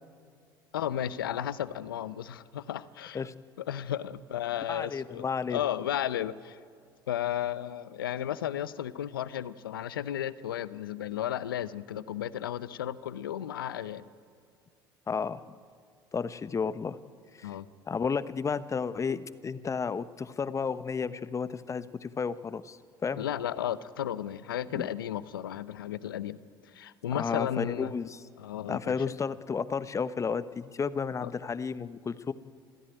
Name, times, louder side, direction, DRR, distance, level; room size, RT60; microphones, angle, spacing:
voice 1, 0.7-3.2 3.7-5.3 5.5-6.6 7.1-14.1 17.4-17.7 23.2-26.4 26.7-27.9 28.4-28.9 31.2-31.3, left 11 dB, 80° left, 16 dB, 0.8 m, -34 dB
voice 2, 4.7-5.6 15.1-15.5 16.1-17.0 17.3-17.6 17.9-23.3 24.7-24.9 27.1-28.2 28.7-32.3, left 5 dB, 25° left, 14 dB, 1.0 m, -32 dB
26.5 x 14.5 x 9.2 m, 2.3 s
hypercardioid pair, 65°, 12 cm